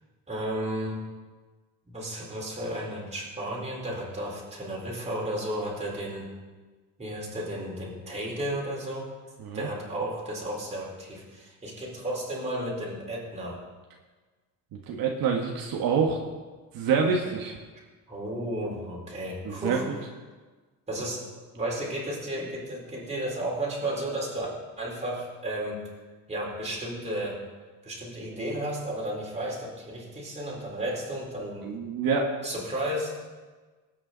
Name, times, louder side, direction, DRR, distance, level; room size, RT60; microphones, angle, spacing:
voice 1, 0.3-1.0 1.9-6.3 7.0-9.1 9.5-13.6 18.1-19.8 20.9-21.3 21.5-24.5 24.8-25.8 26.3-27.4 27.8-31.7 32.4-33.1, right 1 dB, 20° right, -4 dB, 4.2 m, -33 dB
voice 2, 14.7-16.2 16.7-17.5 19.4-19.9 31.6-32.3, right 5 dB, 65° right, 0 dB, 1.5 m, -26 dB
19.0 x 8.9 x 4.0 m, 1.3 s
cardioid pair, 125°, 37 cm